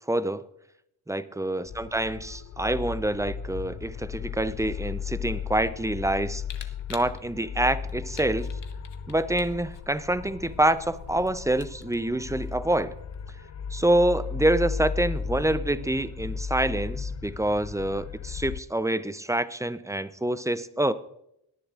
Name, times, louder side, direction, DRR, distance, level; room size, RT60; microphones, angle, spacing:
voice 1, 0.1-0.4 1.1-6.4 6.9-8.5 9.1-12.9 13.7-20.9, right 1 dB, 5° right, 15 dB, 0.6 m, -26 dB
sound 1, 1.7-18.6, left 6 dB, 35° left, 0.6 m, -35 dB
Camera, 6.4-13.2, left 8 dB, 55° left, 1.2 m, -49 dB
18.0 x 10.0 x 2.5 m, 0.78 s
supercardioid pair, 45°, 50 cm